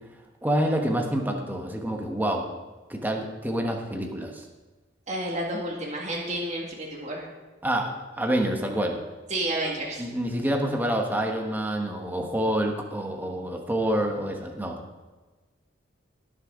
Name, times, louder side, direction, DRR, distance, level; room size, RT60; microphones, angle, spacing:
voice 1, 0.4-2.5 2.9-4.4 7.6-9.0 10.0-14.8, right 1 dB, 10° right, 2 dB, 1.2 m, -27 dB
voice 2, 5.1-7.3 9.3-10.1, right 1 dB, 35° right, -2 dB, 2.0 m, -30 dB
19.5 x 6.5 x 3.8 m, 1.3 s
head